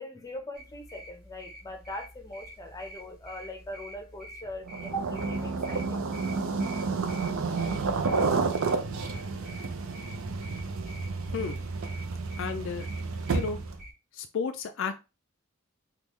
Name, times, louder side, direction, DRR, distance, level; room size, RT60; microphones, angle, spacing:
voice 1, 0.0-6.0, equal, 15° left, 0.6 m, -40 dB
sound 1, 0.5-13.9, equal, 5° right, 1.3 m, -48 dB
sound 2, 4.7-13.8, right 4 dB, 75° right, 0.5 m, -30 dB
voice 2, 11.3-11.6 12.4-12.9 13.3-13.6 14.1-15.0, left 5 dB, 60° left, 0.3 m, -32 dB
3.6 x 2.3 x 3.0 m
head